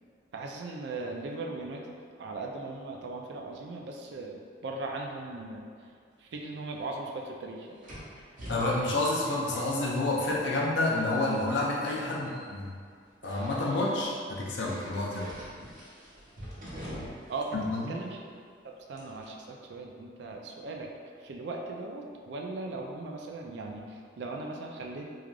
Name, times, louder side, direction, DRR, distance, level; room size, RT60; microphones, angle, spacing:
voice 1, 0.3-5.9 6.2-7.8 17.3-17.6 17.9-18.2 18.9-20.9 21.2-25.0, right 3 dB, 70° right, 0 dB, 0.4 m, -38 dB
sound 1, 6.5-6.6 7.8-10.8 11.1-11.6 12.2-12.5 13.2-13.9 14.7-17.4 17.7-17.8 19.0-19.3, equal, 50° right, 0.7 m, -43 dB
voice 2, 8.5-12.7 13.2-15.3 17.5-17.9, left 2 dB, 75° left, -4 dB, 0.5 m, -29 dB
3.2 x 2.3 x 2.4 m, 2.1 s
head